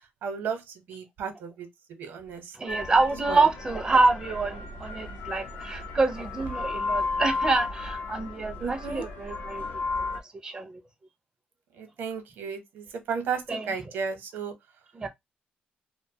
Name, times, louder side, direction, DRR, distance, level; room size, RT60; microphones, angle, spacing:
voice 1, 0.2-2.5 3.3-3.4 8.6-9.0 11.8-14.5, right 6 dB, 75° right, 0.8 m, -34 dB
voice 2, 2.5-9.6 10.4-10.8 13.5-13.7 14.9-15.1, right 3 dB, 20° right, 0.4 m, -26 dB
sound 1, 2.7-10.2, left 3 dB, 75° left, 0.6 m, -33 dB
2.6 x 2.1 x 2.6 m
cardioid pair, 160°, 4 cm